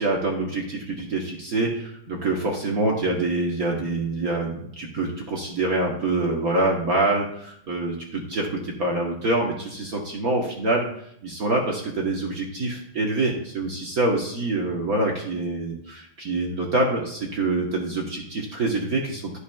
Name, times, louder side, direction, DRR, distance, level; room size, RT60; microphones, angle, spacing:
voice 1, 0.0-10.9 11.2-19.4, right 2 dB, 50° right, -1 dB, 1.3 m, -25 dB
13.0 x 5.6 x 2.3 m, 0.72 s
omnidirectional pair, 2.4 m